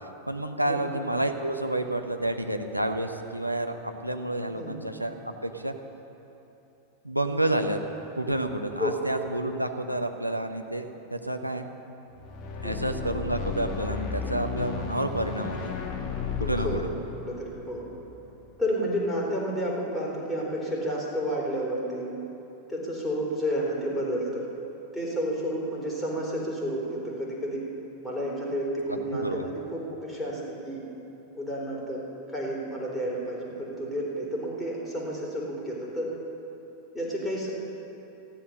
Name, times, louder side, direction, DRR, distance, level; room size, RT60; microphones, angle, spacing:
voice 1, 0.3-5.7 7.0-7.8 8.1-11.7 12.6-15.6 16.4-16.9 29.1-29.5, right 1 dB, 90° right, 5 dB, 0.9 m, -29 dB
sound 1, 12.1-18.5, left 5 dB, 35° left, 1.6 m, -34 dB
voice 2, 12.6-12.9 16.3-16.8 17.2-17.8 18.6-22.1 22.7-24.4 24.9-27.6 28.0-29.6 29.9-30.8 31.3-32.0 32.3-36.1 36.9-37.5, equal, 5° left, -5 dB, 3.8 m, -31 dB
14.5 x 11.5 x 6.5 m, 3.0 s
figure-of-eight pair, 90°, 0 cm